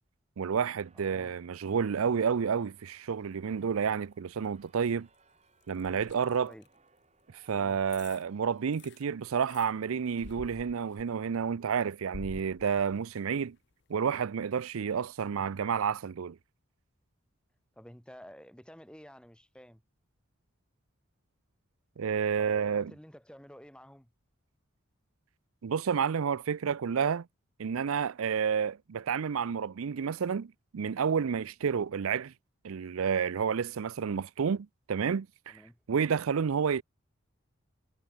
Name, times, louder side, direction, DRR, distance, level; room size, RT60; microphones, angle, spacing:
voice 1, 0.4-5.1 5.7-6.5 7.5-13.6 13.9-16.4 22.0-22.9 25.6-27.3 27.6-32.3 32.6-35.6 35.9-36.8, right 6 dB, 85° right, 0.5 m, -30 dB
sound 1, 0.6-10.9, right 4 dB, 30° right, 4.1 m, -66 dB
voice 2, 0.9-1.4 5.8-6.7 7.5-7.8 17.8-19.8 22.4-24.1 35.5-35.8, equal, 5° left, 1.8 m, -52 dB
sound 2, 3.2-4.1 4.4-6.7 7.4-7.5 7.9-8.2 8.6-9.7 10.2-11.3 11.7-13.3 13.7-13.8, left 3 dB, 55° left, 0.6 m, -49 dB
head